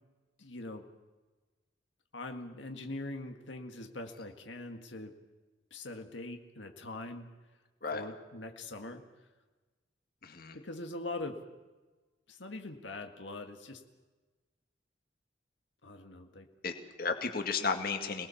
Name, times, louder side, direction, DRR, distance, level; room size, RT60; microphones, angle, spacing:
voice 1, 0.4-0.9 2.1-5.2 5.7-7.3 7.9-9.0 10.5-11.5 12.3-13.8 15.8-16.5, left 2 dB, 85° left, 4 dB, 1.8 m, -42 dB
voice 2, 10.2-10.6 16.6-18.3, left 4 dB, 55° left, 5 dB, 2.1 m, -34 dB
26.5 x 19.5 x 7.1 m, 1.3 s
head